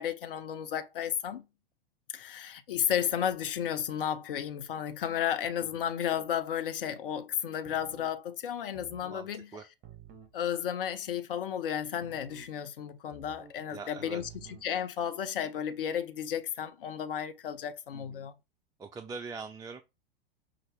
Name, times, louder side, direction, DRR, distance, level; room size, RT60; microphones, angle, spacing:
voice 1, 0.0-1.4 2.1-9.5 10.3-14.2 14.6-18.3, left 9 dB, 65° left, 0.8 m, -33 dB
sound 1, 7.6-8.2 8.7-9.2 9.8-10.4 12.0-12.5 13.1-13.6 14.2-14.7, right 7 dB, 30° right, 0.9 m, -52 dB
voice 2, 9.1-9.6 13.7-14.2 17.9-18.3 18.8-19.8, right 4 dB, 10° right, 0.4 m, -43 dB
5.6 x 2.4 x 3.4 m
figure-of-eight pair, 90°, 29 cm